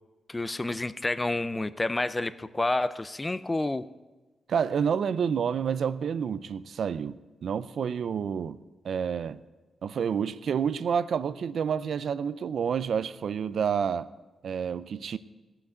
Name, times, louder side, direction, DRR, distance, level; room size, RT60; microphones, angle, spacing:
voice 1, 0.3-3.9, left 2 dB, 15° left, 0.4 m, -29 dB
voice 2, 4.5-8.6 8.8-9.4 9.8-14.1 14.4-15.2, right 7 dB, 65° right, 0.5 m, -29 dB
17.0 x 5.9 x 7.9 m
wide cardioid pair, 130°, 0 cm